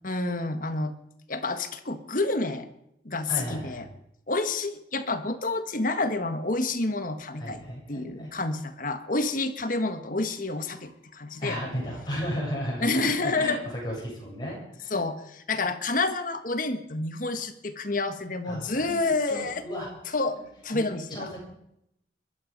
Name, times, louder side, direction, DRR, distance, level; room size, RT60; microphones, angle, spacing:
voice 1, 0.0-0.9 1.3-2.7 3.0-3.8 4.3-11.6 12.8-13.6 14.9-19.6 20.1-21.3, left 3 dB, 45° left, 8 dB, 1.5 m, -29 dB
voice 2, 3.3-3.9 7.4-8.3 11.4-15.0 18.4-19.0 19.3-19.9 20.4-20.5 20.7-20.8 21.1-21.4, equal, 25° left, -4 dB, 7.9 m, -34 dB
22.5 x 12.5 x 5.3 m, 0.79 s
head